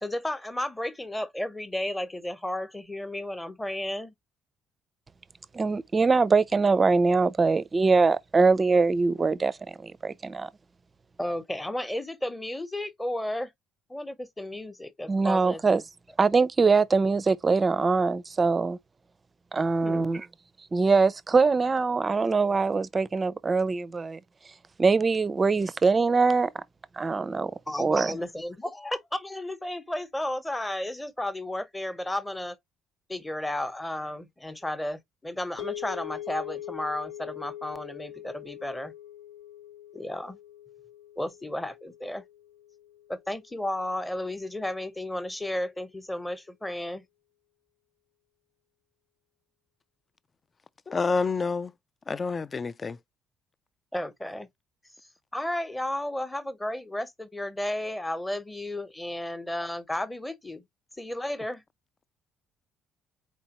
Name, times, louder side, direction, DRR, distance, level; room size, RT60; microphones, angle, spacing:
voice 1, 0.0-4.1 11.2-13.5 13.9-15.6 19.8-20.1 27.7-32.6 33.1-38.9 39.9-40.4 41.2-42.2 43.1-47.0 53.9-54.5 55.3-60.6 61.0-61.6, left 1 dB, 10° left, 0.9 m, -33 dB
voice 2, 5.5-10.5 15.1-15.8 16.2-18.8 19.5-20.2 20.7-24.2 24.8-26.6 27.0-27.5 27.8-28.1, right 4 dB, 25° right, 0.5 m, -23 dB
sound 1, 35.6-43.9, left 12 dB, 80° left, 1.1 m, -42 dB
voice 3, 50.9-51.7 52.1-53.0, left 4 dB, 30° left, 0.4 m, -28 dB
4.3 x 4.2 x 2.9 m
cardioid pair, 105°, 0 cm